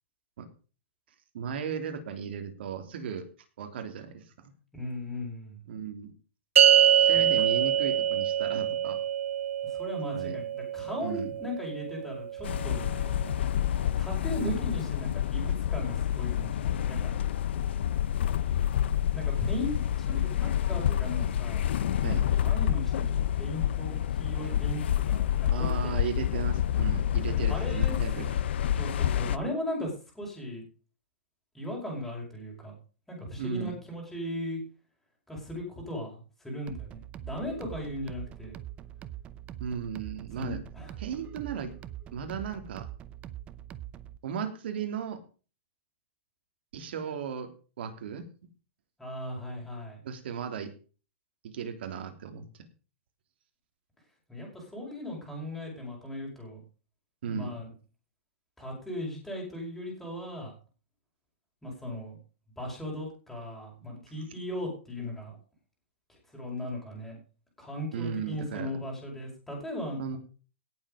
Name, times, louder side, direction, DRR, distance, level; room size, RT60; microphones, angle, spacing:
voice 1, 1.3-3.3 3.6-4.5 5.7-6.1 7.0-9.0 10.1-10.4 11.0-11.3 14.4-14.6 22.0-22.3 25.5-28.3 33.4-33.7 39.6-40.6 41.0-41.7 42.1-42.9 44.2-45.2 46.7-47.5 47.8-48.3 50.0-50.7 51.4-52.4 57.2-57.6 67.9-68.8 70.0-70.2, right 7 dB, 55° right, 6 dB, 3.3 m, -35 dB
voice 2, 4.7-5.6 9.6-12.9 14.0-17.1 19.1-21.6 22.1-26.0 27.3-27.9 28.7-30.6 31.5-32.7 33.1-34.6 35.3-38.5 40.4-40.9 49.0-50.0 54.3-56.6 57.3-57.7 58.6-60.5 61.6-62.2 62.6-65.4 66.1-67.2 67.6-70.2, left 1 dB, 5° left, -2 dB, 5.2 m, -37 dB
sound 1, 6.6-13.1, right 9 dB, 90° right, 0.6 m, -25 dB
sound 2, 12.4-29.4, left 10 dB, 60° left, 0.8 m, -28 dB
sound 3, 36.7-44.2, right 12 dB, 20° right, 0.7 m, -43 dB
17.5 x 7.7 x 5.2 m, 0.37 s
hypercardioid pair, 165°, 7 cm